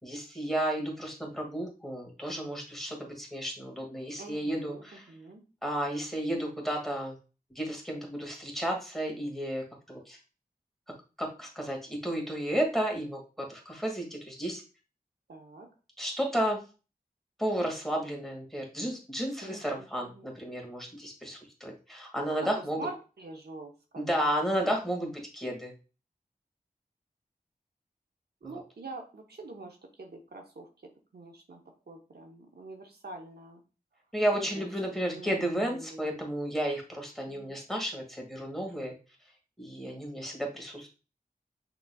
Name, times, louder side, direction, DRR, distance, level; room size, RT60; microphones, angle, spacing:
voice 1, 0.0-5.1 5.6-7.2 7.5-10.2 11.2-14.6 16.0-16.6 17.4-22.8 24.0-25.7 28.4-28.6 34.1-38.9 39.6-40.9, right 1 dB, ahead, 0 dB, 2.0 m, -32 dB
voice 2, 4.2-5.4 15.3-15.7 19.4-20.3 22.2-22.5 22.8-24.1 28.4-30.7 31.1-31.6 31.9-33.6 34.3-34.6 34.9-36.1 37.3-37.6, right 2 dB, 90° right, 2 dB, 0.9 m, -45 dB
6.0 x 3.9 x 2.3 m, 0.33 s
wide cardioid pair, 45°, 16 cm